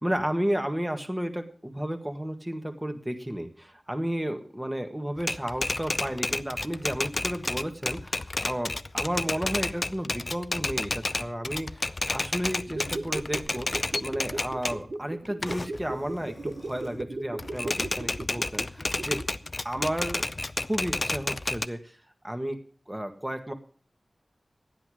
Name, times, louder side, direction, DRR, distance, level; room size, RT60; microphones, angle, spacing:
voice 1, 0.0-19.3 19.6-20.2 20.6-22.0 22.2-22.6 22.9-23.5, equal, 15° right, 6 dB, 1.7 m, -32 dB
Typewriter, 5.2-14.8 15.3-17.0 17.4-21.7, left 2 dB, 45° left, 0.5 m, -31 dB
sound 1, 12.6-19.4 19.7-19.8, right 2 dB, 70° right, 1.1 m, -37 dB
13.0 x 10.0 x 6.3 m, 0.43 s
wide cardioid pair, 80°, 0 cm